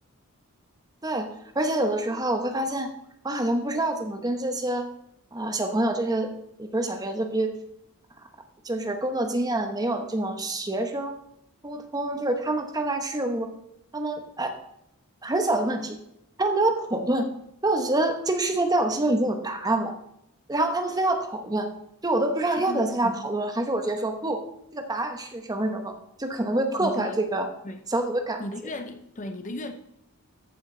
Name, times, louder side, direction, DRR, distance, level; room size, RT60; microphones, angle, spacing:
voice 1, 1.0-2.9 3.2-4.9 5.3-6.3 6.6-7.6 8.6-11.1 11.6-13.5 13.9-14.5 15.2-16.0 16.4-17.3 17.6-19.9 20.5-21.7 22.0-24.4 24.7-25.9 26.2-27.5 27.9-28.4, right 2 dB, 20° right, 1.0 m, -26 dB
voice 2, 22.6-23.2 26.8-27.2 27.6-27.8 28.4-29.7, left 1 dB, 35° left, 0.7 m, -35 dB
14.0 x 6.0 x 3.9 m
head